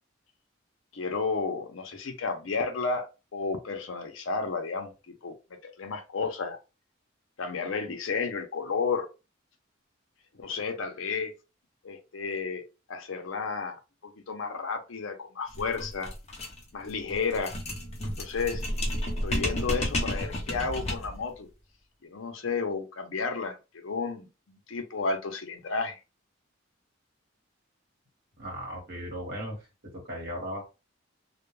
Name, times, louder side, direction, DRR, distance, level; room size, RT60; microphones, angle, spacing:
voice 1, 0.9-3.1 3.3-5.3 5.8-6.6 7.4-9.1 10.3-11.3 11.8-12.6 12.9-16.1 16.7-17.5 18.2-18.6 19.2-21.5 22.0-26.0, left 4 dB, 75° left, 5 dB, 0.6 m, -32 dB
sound 1, 15.5-21.2, left 1 dB, 30° left, 0.6 m, -32 dB
voice 2, 28.4-30.7, equal, 50° right, -1 dB, 1.1 m, -37 dB
2.2 x 2.2 x 3.0 m, 0.29 s
head